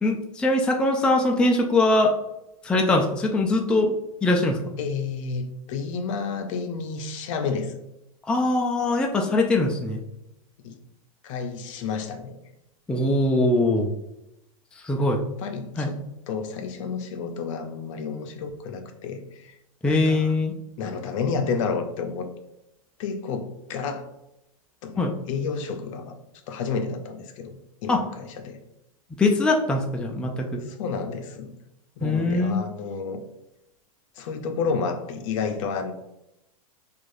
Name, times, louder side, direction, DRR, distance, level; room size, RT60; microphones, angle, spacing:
voice 1, 0.0-2.1 2.6-3.9 4.2-4.6 8.3-10.0 12.9-13.9 14.8-15.2 15.8-15.9 19.8-20.5 25.0-25.1 27.9-28.0 29.2-30.6 32.0-32.6, left 2 dB, 5° left, 1 dB, 0.3 m, -22 dB
voice 2, 4.8-7.8 10.6-10.8 11.2-12.4 15.0-15.1 15.4-16.0 16.3-19.6 19.8-20.3 20.8-22.3 23.0-24.1 24.8-26.2 26.5-28.6 30.6-31.5 32.0-33.2 34.1-35.9, left 5 dB, 60° left, 6 dB, 0.6 m, -30 dB
4.6 x 2.4 x 2.6 m, 0.87 s
hypercardioid pair, 115°, 19 cm